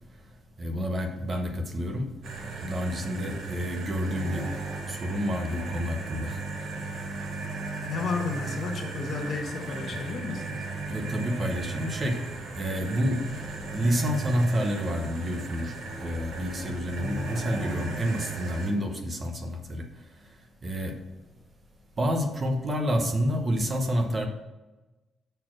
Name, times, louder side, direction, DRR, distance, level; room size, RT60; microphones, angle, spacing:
voice 1, 0.6-2.1 2.6-4.5 4.9-6.4 10.9-12.2 12.5-13.2 13.7-21.0 22.0-24.3, equal, 30° right, 4 dB, 0.9 m, -29 dB
sound 1, 2.2-18.7, right 3 dB, 70° right, 1.5 m, -36 dB
voice 2, 7.9-10.6, left 4 dB, 45° left, 4 dB, 1.0 m, -32 dB
6.7 x 4.1 x 6.1 m, 1.1 s
cardioid pair, 150°, 0 cm